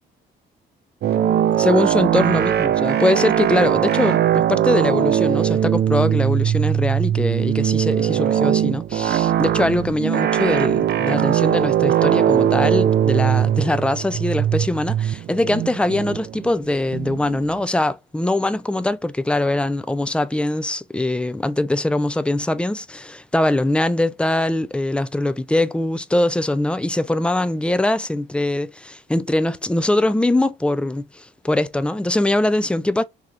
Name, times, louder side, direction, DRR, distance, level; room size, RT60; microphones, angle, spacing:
sound 1, 1.0-17.5, right 10 dB, 55° right, 0.5 m, -20 dB
voice 1, 1.6-33.0, left 1 dB, 5° left, 0.3 m, -22 dB
3.4 x 2.9 x 2.4 m
cardioid pair, 90°, 20 cm